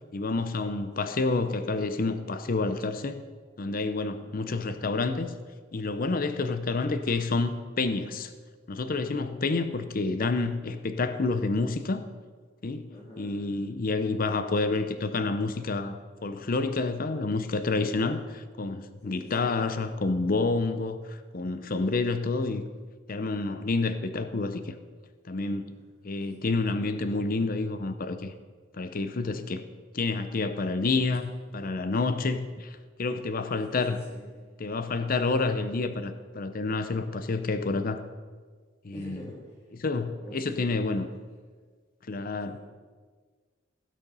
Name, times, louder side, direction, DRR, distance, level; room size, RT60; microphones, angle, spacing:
voice 1, 0.1-3.2 3.6-5.4 5.7-8.3 8.7-12.0 12.6-12.9 13.2-22.7 23.1-24.7 25.2-25.8 26.0-28.3 28.7-29.6 29.9-34.0 34.6-38.0 38.8-39.2 39.8-41.1 42.1-42.6, left 3 dB, 50° left, 10 dB, 0.6 m, -29 dB
voice 2, 4.2-4.8 9.2-9.4 12.9-13.5 19.0-19.6 26.7-27.3 33.7-34.5 38.9-39.6 40.2-41.2 42.5-42.6, equal, 20° left, -5 dB, 2.0 m, -47 dB
16.0 x 6.4 x 5.4 m, 1.5 s
head